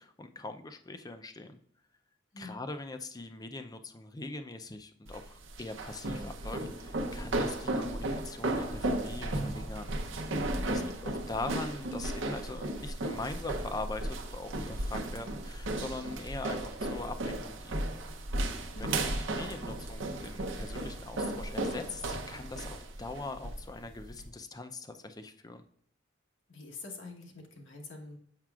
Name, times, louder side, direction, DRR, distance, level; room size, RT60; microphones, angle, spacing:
voice 1, 0.0-1.6 2.4-9.9 10.7-17.9 18.8-25.6, left 2 dB, 20° left, 8 dB, 0.4 m, -42 dB
sound 1, 5.1-24.3, right 1 dB, 85° right, 0.7 m, -35 dB
voice 2, 10.5-10.9 18.7-19.0 26.5-28.2, left 3 dB, 80° left, 1 dB, 1.2 m, -45 dB
7.3 x 5.8 x 2.4 m, 0.63 s
head